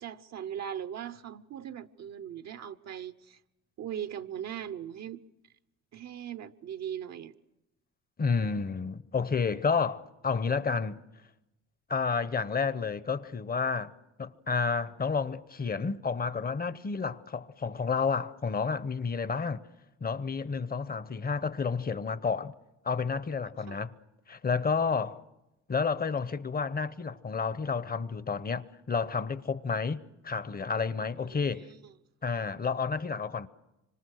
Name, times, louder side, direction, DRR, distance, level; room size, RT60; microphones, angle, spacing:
voice 1, 0.0-3.4 3.8-5.2 5.9-7.3 23.7-23.8 31.3-31.8, right 9 dB, 60° right, 0.8 m, -39 dB
voice 2, 8.2-11.0 11.9-13.9 14.2-19.6 20.0-22.5 22.8-23.9 24.3-25.2 25.7-31.7 32.2-33.5, left 5 dB, 30° left, 0.9 m, -30 dB
25.5 x 25.5 x 6.4 m
cardioid pair, 90°, 30 cm